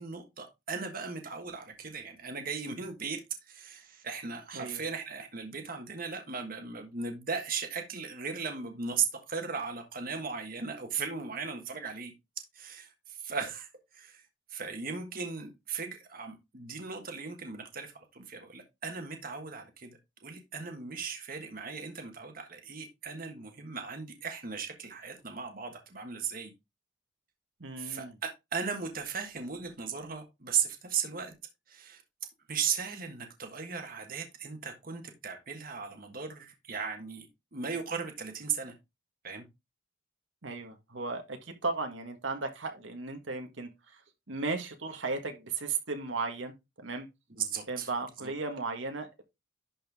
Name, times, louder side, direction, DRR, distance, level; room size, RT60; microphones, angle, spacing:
voice 1, 0.0-14.2 14.5-19.9 20.2-26.5 27.8-31.3 31.7-32.0 32.5-38.7 39.2-39.4 47.3-47.9 48.2-48.3, right 6 dB, 50° right, 1.5 m, -37 dB
voice 2, 4.5-4.8 27.6-28.1 40.4-44.0 44.3-47.1 47.7-49.2, right 3 dB, 80° right, 1.5 m, -36 dB
11.5 x 4.4 x 3.5 m
head